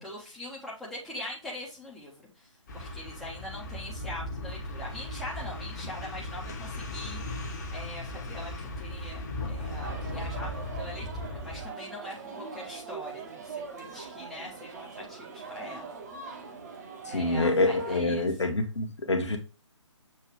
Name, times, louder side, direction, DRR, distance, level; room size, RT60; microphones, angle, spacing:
voice 1, 0.0-15.9 16.3-16.4 17.0-18.5, left 1 dB, ahead, 0.5 m, -42 dB
sound 1, 2.7-11.7, left 1 dB, 35° left, 0.8 m, -37 dB
sound 2, 9.5-18.0, right 5 dB, 35° right, 0.7 m, -42 dB
voice 2, 17.1-19.4, left 2 dB, 65° left, 0.9 m, -26 dB
6.6 x 2.3 x 3.1 m
figure-of-eight pair, 145°, 16 cm